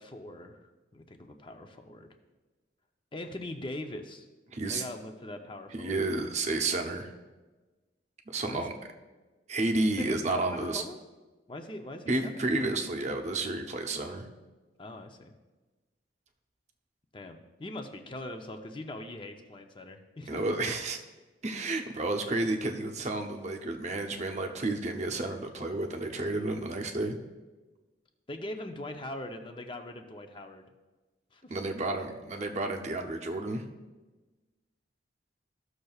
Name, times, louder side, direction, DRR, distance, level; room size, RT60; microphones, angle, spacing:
voice 1, 0.0-2.1 3.1-4.3 4.7-6.0 8.5-8.6 10.0-11.0 11.5-12.4 14.8-15.3 17.1-20.4 28.3-30.6 31.3-31.5, left 1 dB, 25° left, 5 dB, 0.6 m, -41 dB
voice 2, 4.5-4.8 5.7-7.1 8.3-8.7 9.5-10.8 12.1-14.2 20.3-21.0 21.4-27.1 31.5-33.6, right 2 dB, 35° right, 4 dB, 0.7 m, -31 dB
15.0 x 6.5 x 2.4 m, 1.2 s
head